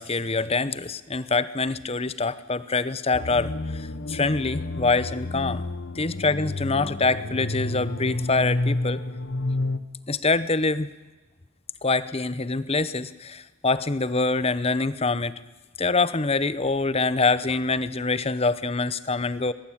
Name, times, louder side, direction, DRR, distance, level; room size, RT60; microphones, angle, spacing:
voice 1, 0.0-5.6 5.9-9.0 10.1-10.9 11.8-15.3 15.8-19.5, left 3 dB, 25° left, 16 dB, 0.8 m, -25 dB
sound 1, 3.1-9.8, left 2 dB, 50° left, 1.1 m, -30 dB
22.0 x 21.0 x 8.7 m, 1.2 s
head